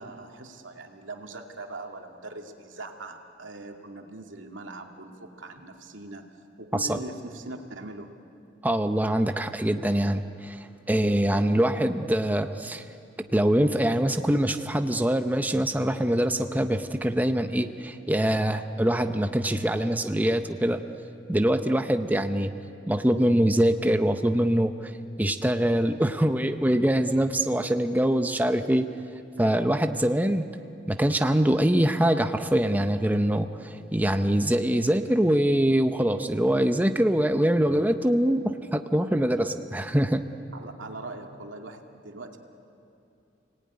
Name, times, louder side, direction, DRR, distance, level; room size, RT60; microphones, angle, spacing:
voice 1, 0.0-6.3 6.6-8.1 40.5-42.4, right 2 dB, 90° right, 3 dB, 2.4 m, -41 dB
voice 2, 8.6-10.6 10.9-12.8 13.3-20.8 21.3-22.5 22.9-24.9 25.2-28.9 29.4-30.5 30.9-40.2, right 1 dB, 10° right, 7 dB, 0.8 m, -24 dB
29.5 x 19.0 x 9.7 m, 2.6 s
head